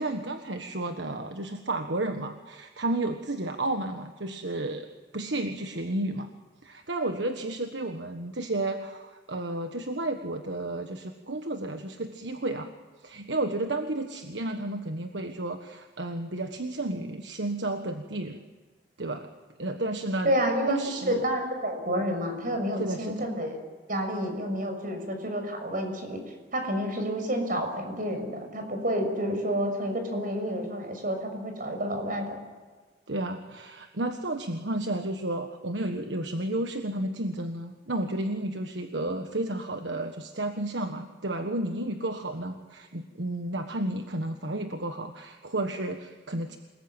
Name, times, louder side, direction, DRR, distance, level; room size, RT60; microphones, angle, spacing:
voice 1, 0.0-4.9 5.1-6.3 6.6-12.7 13.0-18.4 19.0-19.3 19.6-20.3 20.7-21.2 22.8-23.3 33.1-46.6, right 2 dB, 75° right, 6 dB, 1.5 m, -32 dB
voice 2, 20.2-23.6 23.9-26.2 26.5-32.4, equal, 50° right, 5 dB, 6.6 m, -29 dB
28.0 x 20.5 x 9.0 m, 1.4 s
head